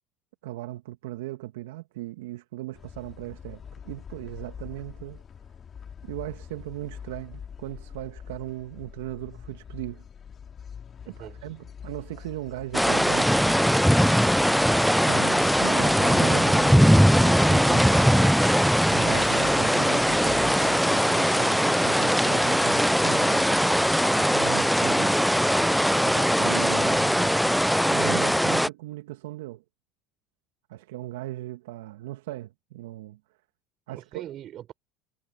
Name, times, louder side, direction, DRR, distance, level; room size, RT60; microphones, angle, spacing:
voice 1, 0.4-5.2 6.0-10.0 11.1-13.7 14.9-17.8 18.9-23.8 24.1-25.2 26.0-27.3 27.9-29.6 30.7-33.2 33.9-34.2, right 16 dB, 75° right, 1.8 m, -38 dB
sound 1, 2.7-20.8, left 7 dB, 35° left, 2.5 m, -44 dB
voice 2, 11.0-11.4 17.7-18.4 33.9-34.8, right 11 dB, 50° right, 4.5 m, -41 dB
sound 2, 12.7-28.7, equal, ahead, 0.3 m, -21 dB
sound 3, 13.9-24.3, left 14 dB, 85° left, 2.9 m, -52 dB
hypercardioid pair, 80°, 0 cm